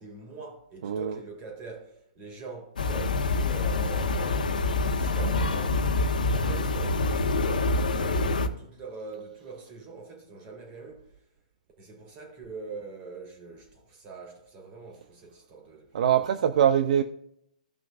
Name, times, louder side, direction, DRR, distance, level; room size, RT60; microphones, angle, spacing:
voice 1, 0.0-5.8 6.3-11.1 11.8-16.4, right 4 dB, 30° right, 3.4 m, -43 dB
voice 2, 0.8-1.2 15.9-17.0, right 9 dB, 60° right, 0.6 m, -23 dB
sound 1, 2.8-8.5, left 3 dB, 80° left, 1.1 m, -26 dB
16.5 x 5.9 x 2.5 m
hypercardioid pair, 135°, 5 cm